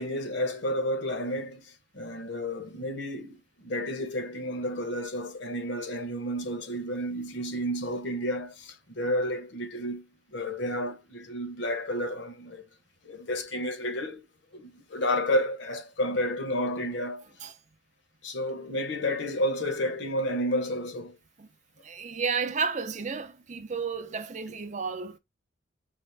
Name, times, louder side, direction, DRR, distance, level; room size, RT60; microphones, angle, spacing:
voice 1, 0.0-10.1 10.3-12.6 13.0-14.2 14.5-17.2 18.2-21.2, left 1 dB, 60° left, 0.9 m, -31 dB
voice 2, 21.8-25.2, right 5 dB, 35° right, 0.5 m, -32 dB
4.1 x 2.5 x 3.3 m
head